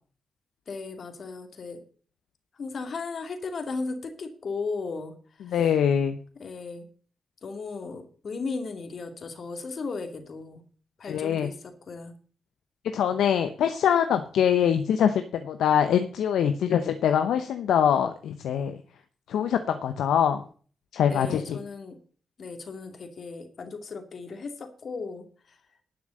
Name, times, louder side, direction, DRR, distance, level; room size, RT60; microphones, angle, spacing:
voice 1, 0.7-1.8 2.6-5.5 6.4-6.8 7.4-10.6 11.0-12.1 21.1-22.0 22.4-25.6, left 4 dB, 60° left, 7 dB, 2.4 m, -36 dB
voice 2, 5.5-6.2 11.0-11.5 12.9-18.8 19.3-20.4 20.9-21.6, left 8 dB, 80° left, 8 dB, 0.8 m, -24 dB
11.5 x 6.0 x 7.8 m, 0.42 s
hypercardioid pair, 40°, 0 cm